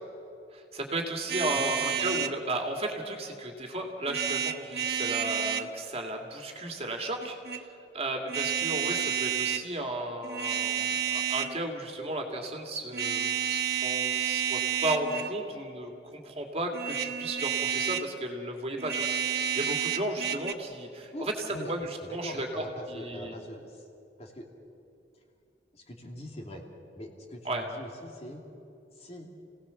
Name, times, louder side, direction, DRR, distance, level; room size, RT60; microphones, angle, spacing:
voice 1, 0.5-7.4 7.9-21.3 21.7-23.3 27.4-27.7, right 1 dB, 35° right, 2 dB, 2.4 m, -34 dB
sound 1, 1.3-2.4 4.1-5.7 7.2-7.6 8.3-9.6 10.2-11.6 12.9-15.4 16.7-18.1 18.8-20.5, right 8 dB, 60° right, 1.1 m, -30 dB
voice 2, 21.1-21.7 22.0-23.8 24.2-24.5 25.7-26.6 26.9-28.4 29.0-29.3, equal, 35° left, 1 dB, 2.8 m, -42 dB
29.5 x 17.5 x 7.1 m, 2.6 s
head